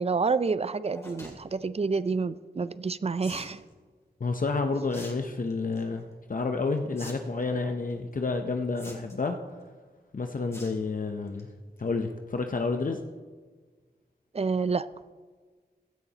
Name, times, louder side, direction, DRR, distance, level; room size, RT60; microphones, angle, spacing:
voice 1, 0.0-3.6 14.3-14.9, right 4 dB, 35° right, 15 dB, 0.4 m, -28 dB
sound 1, 0.9-1.3 3.2-3.6 4.9-5.1 5.5-5.8 7.0-7.1 7.4-7.5 8.8-9.3 10.5-10.8 11.2-11.4 11.8-11.9 12.1-12.2, left 1 dB, 15° left, 2.7 m, -44 dB
voice 2, 4.2-9.4 10.1-11.5 11.8-13.0, left 3 dB, 55° left, 5 dB, 0.7 m, -30 dB
15.5 x 12.5 x 2.9 m, 1.5 s
wide cardioid pair, 85°, 17 cm